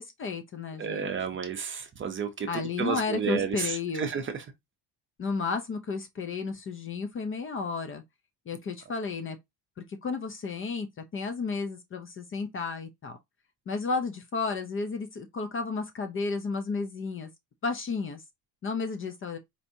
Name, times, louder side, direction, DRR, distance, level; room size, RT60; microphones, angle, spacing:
voice 1, 0.0-1.1 2.5-4.1 5.2-8.0 8.5-9.4 10.0-10.9 11.1-13.2 13.7-17.3 17.6-18.2 18.6-19.4, left 4 dB, 30° left, 0.5 m, -32 dB
voice 2, 0.8-4.3, right 7 dB, 30° right, 0.6 m, -31 dB
4.5 x 2.7 x 2.6 m
cardioid pair, 140°, 42 cm